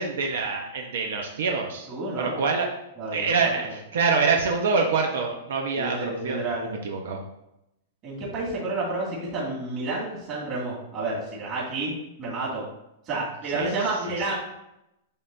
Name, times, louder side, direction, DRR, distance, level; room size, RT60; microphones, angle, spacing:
voice 1, 0.0-1.9 2.2-2.7 3.1-7.2 13.5-13.7, right 4 dB, 75° right, 2 dB, 0.9 m, -26 dB
voice 2, 1.9-2.4 3.0-3.7 5.7-6.7 8.0-11.9 12.2-12.6 13.1-14.4, right 2 dB, 25° right, -5 dB, 2.3 m, -30 dB
11.0 x 3.7 x 2.7 m, 0.86 s
supercardioid pair, 175°, 0 cm